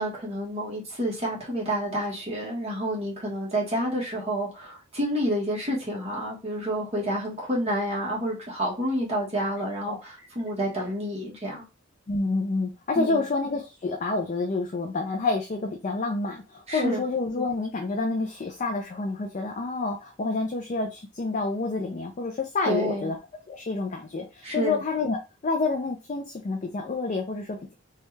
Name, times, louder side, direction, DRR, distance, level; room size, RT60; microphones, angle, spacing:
voice 1, 0.0-11.6 12.9-13.3 16.7-17.0 22.7-23.1 24.4-24.8, equal, 30° right, -4 dB, 1.2 m, -29 dB
voice 2, 12.1-23.2 23.5-27.7, left 3 dB, 40° left, 3 dB, 0.4 m, -28 dB
3.2 x 2.3 x 3.1 m, 0.29 s
head